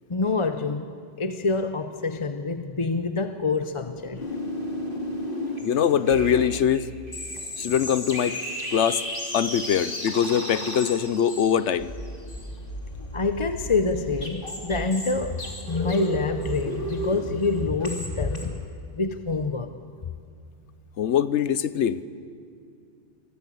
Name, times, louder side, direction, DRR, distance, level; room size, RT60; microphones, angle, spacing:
voice 1, 0.1-4.2 7.6-7.7 13.0-15.4 15.7-18.6 18.9-19.7, left 3 dB, 30° left, 8 dB, 0.7 m, -27 dB
sound 1, 4.2-18.4, equal, 50° left, 3.6 m, -33 dB
voice 2, 5.6-6.9 7.6-8.4 8.7-9.0 9.3-11.9 21.0-22.0, left 8 dB, 85° left, 15 dB, 1.1 m, -22 dB
25.5 x 18.0 x 8.4 m, 2.3 s
omnidirectional pair, 1.2 m